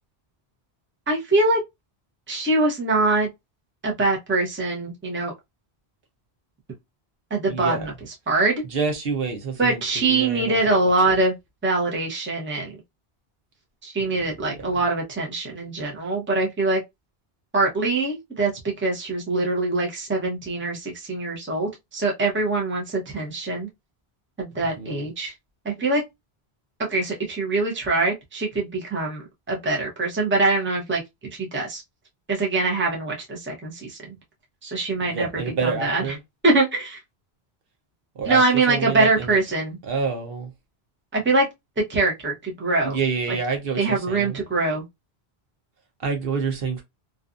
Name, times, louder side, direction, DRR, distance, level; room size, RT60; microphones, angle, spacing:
voice 1, 1.1-1.6 2.3-3.3 3.8-5.3 7.3-7.9 8.3-8.6 9.6-11.3 11.6-12.7 13.8-16.8 17.5-23.7 24.4-25.3 25.6-26.0 26.9-31.0 31.4-31.8 32.3-34.1 34.6-35.3 35.6-36.2 36.4-37.0 38.2-39.8 41.1-41.5 41.9-43.0 43.8-44.8, right 3 dB, 15° right, 0.7 m, -23 dB
voice 2, 7.5-7.9 8.7-10.9 14.0-14.6 24.8-25.1 35.0-36.2 38.2-38.4 38.7-39.4 39.9-40.5 42.8-44.4 46.0-46.8, right 5 dB, 65° right, 0.9 m, -28 dB
2.6 x 2.3 x 2.4 m
omnidirectional pair, 1.1 m